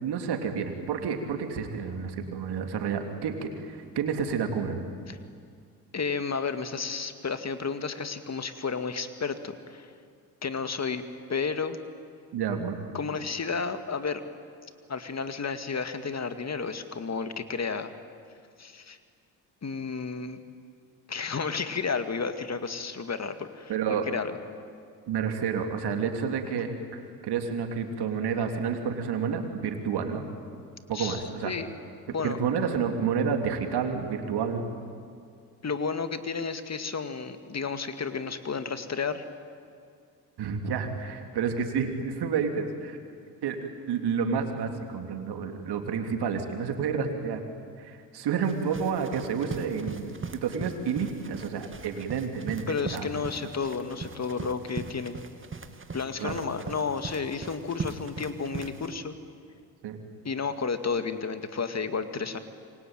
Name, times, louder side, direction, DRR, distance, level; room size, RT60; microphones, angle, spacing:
voice 1, 0.0-4.8 12.3-12.8 23.7-24.1 25.1-30.3 30.9-31.5 32.2-34.6 40.4-43.0 43.4-47.4 47.8-53.1 56.2-56.4 59.8-60.0, right 6 dB, 65° right, 5 dB, 3.4 m, -30 dB
voice 2, 5.9-9.9 10.4-11.0 11.3-11.8 12.9-14.2 14.9-17.9 18.6-19.0 19.6-20.4 21.1-24.3 30.9-31.7 32.1-32.4 35.6-39.3 52.7-55.2 55.9-59.1 60.2-62.4, left 5 dB, 40° left, 9 dB, 2.3 m, -32 dB
sound 1, 48.4-58.9, right 4 dB, 30° right, 2.3 m, -40 dB
27.0 x 23.5 x 9.3 m, 2.3 s
hypercardioid pair, 55°, 42 cm